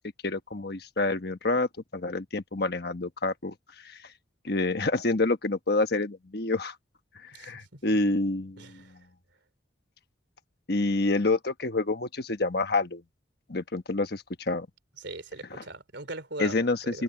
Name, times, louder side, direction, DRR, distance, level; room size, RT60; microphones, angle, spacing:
voice 1, 0.2-4.0 4.4-6.8 7.2-9.0 10.7-13.0 13.5-14.7 15.5-15.6 16.4-17.0, left 2 dB, 55° left, 1.3 m, -28 dB
voice 2, 7.3-7.8 8.6-8.9 15.0-16.6 16.8-17.0, right 2 dB, 65° right, 3.2 m, -40 dB
head